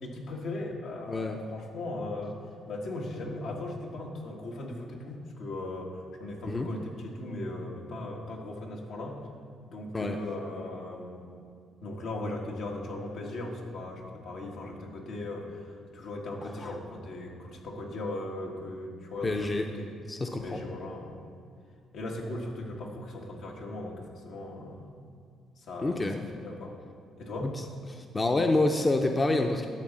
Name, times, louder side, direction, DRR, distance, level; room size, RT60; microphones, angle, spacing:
voice 1, 0.0-2.4 2.7-9.2 9.6-11.3 11.8-19.9 20.4-21.2 21.9-24.9 25.6-26.7 27.2-27.6, left 2 dB, 75° left, -1 dB, 1.7 m, -38 dB
voice 2, 1.1-1.4 6.4-6.7 9.9-10.2 16.4-16.7 19.2-19.7 20.1-20.6 25.8-26.2 27.4-27.5 27.9-29.7, left 2 dB, 25° left, 4 dB, 0.6 m, -27 dB
11.5 x 4.0 x 7.5 m, 2.3 s
cardioid pair, 90°, 0 cm